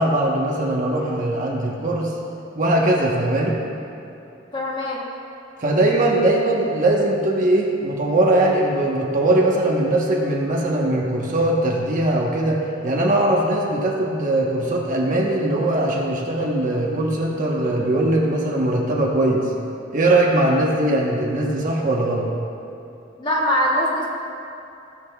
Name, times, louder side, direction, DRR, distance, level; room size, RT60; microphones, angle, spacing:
voice 1, 0.0-2.1 2.6-3.6 5.6-19.5 19.9-22.3, right 1 dB, 40° right, -2 dB, 1.1 m, -20 dB
voice 2, 4.5-5.0 23.2-24.1, equal, 25° left, -5 dB, 1.6 m, -22 dB
16.0 x 7.7 x 2.3 m, 2.8 s
head